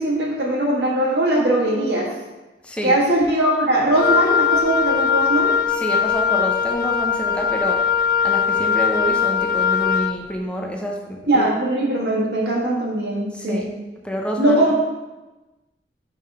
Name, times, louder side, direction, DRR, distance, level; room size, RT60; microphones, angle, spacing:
voice 1, 0.0-2.1 2.8-5.5 11.3-13.7 14.4-14.7, right 1 dB, 70° right, -4 dB, 1.7 m, -20 dB
voice 2, 2.6-3.0 5.7-7.9 8.2-11.5 13.3-13.7 14.0-14.7, equal, 5° left, 0 dB, 0.6 m, -27 dB
Wind instrument woodwind instrument, 4.0-10.2, left 7 dB, 55° left, 0.3 m, -20 dB
5.5 x 3.6 x 5.4 m, 1.1 s
head